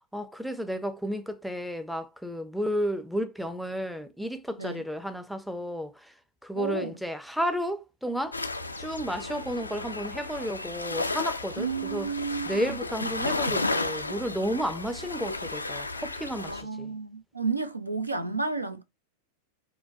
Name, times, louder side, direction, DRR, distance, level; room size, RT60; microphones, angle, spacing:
voice 1, 0.1-6.1 6.4-8.4 8.8-12.1 12.5-16.9, equal, ahead, 0.5 m, -32 dB
voice 2, 6.6-7.0 11.6-12.8 16.4-18.8, right 4 dB, 85° right, 0.4 m, -32 dB
sound 1, 8.3-16.6, left 2 dB, 80° left, 0.3 m, -33 dB
4.5 x 2.1 x 2.6 m
figure-of-eight pair, 90°, 0 cm